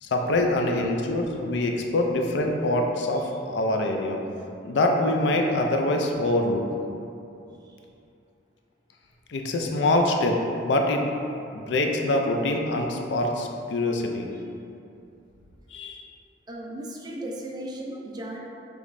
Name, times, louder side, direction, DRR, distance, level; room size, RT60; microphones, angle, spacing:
voice 1, 0.0-4.2 4.6-6.6 9.3-11.0 11.5-14.3 15.7-16.0, left 1 dB, 85° left, 2 dB, 0.4 m, -24 dB
voice 2, 16.5-18.4, right 1 dB, 25° right, -2 dB, 0.4 m, -36 dB
5.0 x 3.1 x 2.6 m, 2.7 s
head